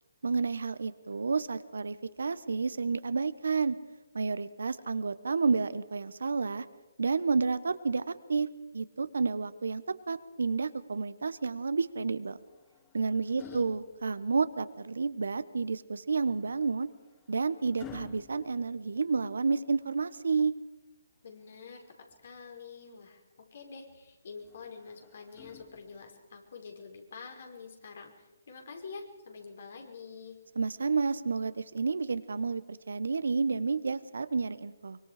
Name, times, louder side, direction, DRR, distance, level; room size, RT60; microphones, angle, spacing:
voice 1, 0.2-3.8 4.1-6.7 7.0-8.5 8.7-12.4 12.9-16.9 17.3-20.5 30.6-35.0, right 4 dB, 75° right, 14 dB, 1.2 m, -30 dB
sound 1, 12.2-14.7 16.3-19.5 21.2-22.4 24.4-26.2 27.4-27.7, left 8 dB, 15° left, 1.2 m, -53 dB
voice 2, 13.1-13.6 21.2-21.8 22.2-30.4, left 5 dB, 60° left, 3 dB, 5.0 m, -47 dB
24.5 x 23.0 x 5.1 m, 1.1 s
hypercardioid pair, 150°, 0 cm